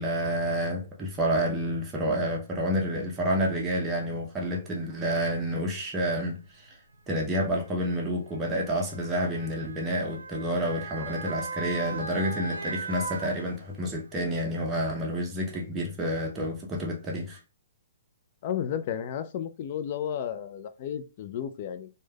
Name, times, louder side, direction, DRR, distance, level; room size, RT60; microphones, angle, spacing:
voice 1, 0.0-6.8 7.1-17.4, equal, 15° right, 0.6 m, -29 dB
Motor vehicle (road) / Siren, 4.1-4.2 5.1-5.3 6.4-14.0 14.4-14.5, right 3 dB, 90° right, 0.3 m, -39 dB
voice 2, 18.4-21.9, left 9 dB, 45° left, 0.3 m, -33 dB
3.1 x 2.1 x 2.2 m
hypercardioid pair, 130°, 0 cm